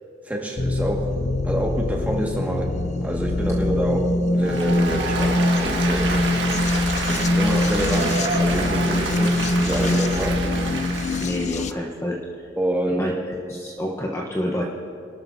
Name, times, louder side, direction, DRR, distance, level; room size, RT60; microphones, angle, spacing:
voice 1, 0.3-2.7 3.0-6.3 7.0-10.5 12.6-13.1, right 1 dB, 10° right, -1 dB, 1.8 m, -27 dB
sound 1, 0.6-11.7, left 2 dB, 40° left, 0.5 m, -23 dB
Applause, 4.4-11.4, right 3 dB, 80° right, 1.8 m, -28 dB
voice 2, 11.2-12.2 13.0-14.6, left 1 dB, 15° left, -2 dB, 1.0 m, -28 dB
25.0 x 12.5 x 2.7 m, 2.6 s
head